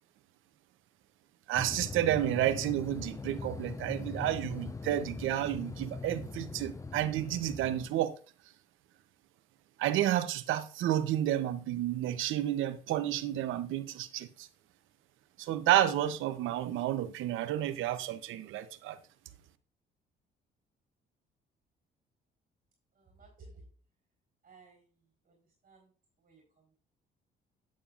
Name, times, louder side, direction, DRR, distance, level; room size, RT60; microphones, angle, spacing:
sound 1, 1.5-7.9, left 4 dB, 15° left, 0.4 m, -41 dB
voice 1, 1.5-8.1 9.8-14.5 15.4-19.0, right 12 dB, 80° right, 0.8 m, -31 dB
voice 2, 23.0-23.6 24.4-24.9 25.3-25.4 25.6-25.9 26.2-26.4, right 3 dB, 45° right, 3.9 m, -56 dB
8.7 x 8.6 x 2.5 m
cardioid pair, 85°, 20 cm